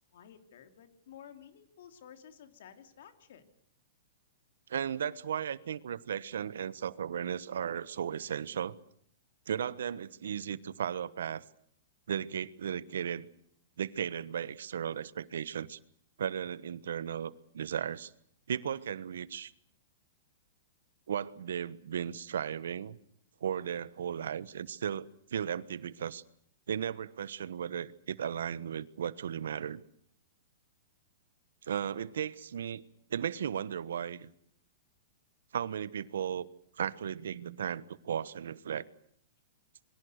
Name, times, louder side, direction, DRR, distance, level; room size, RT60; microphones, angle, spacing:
voice 1, 0.0-3.5, left 9 dB, 60° left, 8 dB, 3.2 m, -53 dB
voice 2, 4.7-8.8 9.5-11.4 12.1-13.3 13.8-15.8 16.2-18.1 18.5-19.5 21.1-23.0 23.4-26.2 26.7-29.8 31.6-32.8 33.1-34.3 35.5-36.5 36.8-38.9, right 8 dB, 85° right, 18 dB, 1.2 m, -35 dB
26.5 x 23.0 x 6.6 m, 0.66 s
hypercardioid pair, 165°, 0 cm